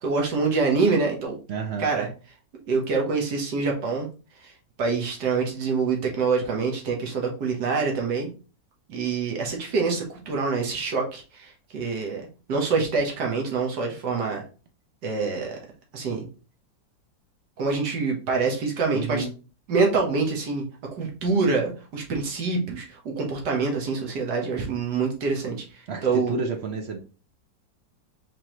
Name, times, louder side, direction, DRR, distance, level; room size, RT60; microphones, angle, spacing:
voice 1, 0.0-1.4 1.8-2.1 2.7-4.1 4.4-4.5 4.8-8.3 8.9-12.2 12.5-14.4 15.0-15.6 15.9-16.2 17.6-19.3 19.7-20.6 20.9-26.3, right 4 dB, 65° right, 0 dB, 1.7 m, -25 dB
voice 2, 1.5-1.9 18.9-19.3 25.9-27.0, right 4 dB, 85° right, 4 dB, 0.5 m, -30 dB
4.8 x 3.6 x 3.0 m, 0.35 s
omnidirectional pair, 2.0 m